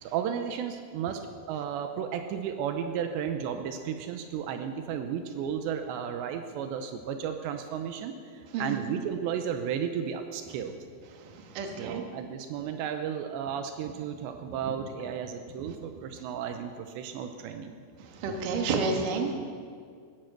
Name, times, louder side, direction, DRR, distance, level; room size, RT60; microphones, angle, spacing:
voice 1, 0.0-10.8 11.6-17.8, right 8 dB, 85° right, 7 dB, 2.9 m, -34 dB
voice 2, 8.5-8.8 11.3-12.0 18.2-19.3, right 4 dB, 60° right, 3 dB, 2.6 m, -30 dB
17.5 x 10.5 x 6.6 m, 2.1 s
omnidirectional pair, 5.1 m